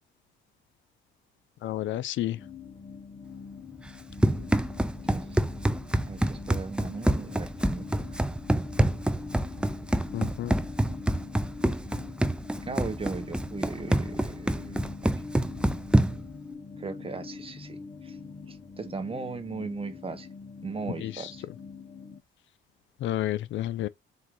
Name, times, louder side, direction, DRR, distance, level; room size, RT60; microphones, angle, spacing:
voice 1, 1.6-2.4 10.1-10.5 21.0-21.3 23.0-23.9, left 13 dB, 75° left, 0.5 m, -30 dB
sound 1, 2.3-22.2, left 4 dB, 35° left, 1.2 m, -43 dB
Run, 3.9-16.3, right 1 dB, 5° right, 0.5 m, -27 dB
voice 2, 5.0-5.4 6.1-7.8 12.7-15.2 16.8-18.2 18.5-20.3 20.6-21.5, right 4 dB, 30° right, 1.1 m, -38 dB
4.5 x 2.7 x 3.8 m
cardioid pair, 90°, 20 cm